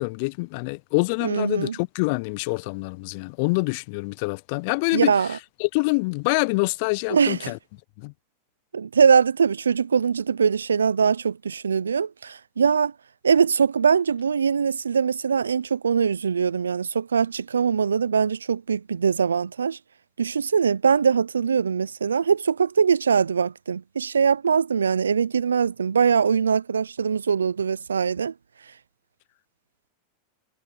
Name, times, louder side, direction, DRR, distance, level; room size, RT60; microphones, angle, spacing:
voice 1, 0.0-7.6 8.0-8.1, left 28 dB, 55° left, 0.4 m, -26 dB
voice 2, 1.2-1.7 4.9-5.3 7.1-7.5 8.7-12.9 13.2-19.8 20.2-28.3, right 6 dB, 85° right, 0.5 m, -22 dB
hypercardioid pair, 95°, 0 cm